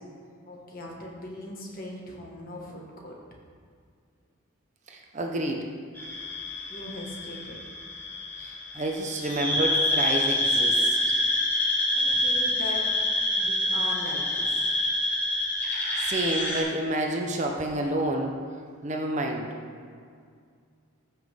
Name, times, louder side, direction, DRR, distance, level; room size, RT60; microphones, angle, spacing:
voice 1, 0.5-3.2 6.7-7.6 11.9-12.9 13.3-14.6, left 1 dB, 40° left, -1 dB, 1.6 m, -40 dB
voice 2, 4.9-5.7 8.4-11.0 16.0-18.3 18.8-19.5, right 1 dB, 35° right, 1 dB, 0.7 m, -29 dB
sound 1, 5.9-16.6, left 1 dB, 10° left, 1.7 m, -27 dB
14.5 x 5.9 x 3.6 m, 2.2 s
head